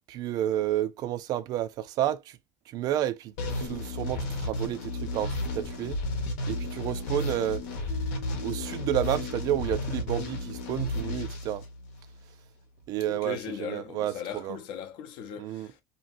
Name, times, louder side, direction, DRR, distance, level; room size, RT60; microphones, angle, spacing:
voice 1, 0.1-2.4 2.7-6.0 6.5-7.6 8.4-11.6 12.9-14.6 15.4-15.7, right 12 dB, 50° right, 0.3 m, -31 dB
sound 1, 3.4-12.2, left 2 dB, 85° left, 1.0 m, -33 dB
voice 2, 6.8-7.3 13.1-15.8, left 8 dB, 65° left, 0.6 m, -39 dB
sound 2, 7.9-11.1, left 3 dB, 25° left, 0.9 m, -49 dB
2.7 x 2.7 x 2.5 m
cardioid pair, 135°, 9 cm